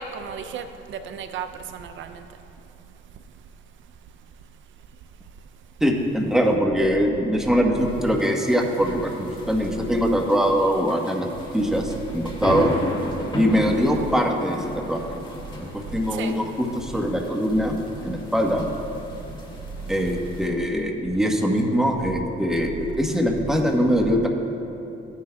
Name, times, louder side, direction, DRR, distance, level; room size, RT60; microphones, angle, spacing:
voice 1, 0.0-1.5 1.7-2.1 13.7-13.8 16.1-16.3, right 7 dB, 75° right, 8 dB, 0.5 m, -34 dB
voice 2, 5.8-11.3 11.5-12.7 13.3-15.2 15.7-17.8 18.0-18.7 19.9-24.3, equal, ahead, 1 dB, 1.1 m, -22 dB
sound 1, 7.7-20.5, left 1 dB, 25° left, 2.0 m, -35 dB
15.5 x 9.6 x 2.3 m, 3.0 s
cardioid pair, 90°, 20 cm